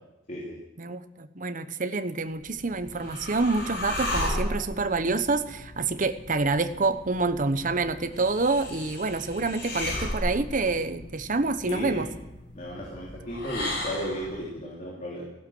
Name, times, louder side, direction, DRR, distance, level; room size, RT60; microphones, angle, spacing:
voice 1, 0.8-12.1, right 3 dB, 45° right, 10 dB, 1.0 m, -27 dB
sound 1, 2.3-14.4, left 1 dB, 65° left, 5.5 m, -35 dB
voice 2, 11.6-12.1 12.5-15.3, equal, 40° left, -5 dB, 3.3 m, -34 dB
15.5 x 11.5 x 7.7 m, 0.95 s
head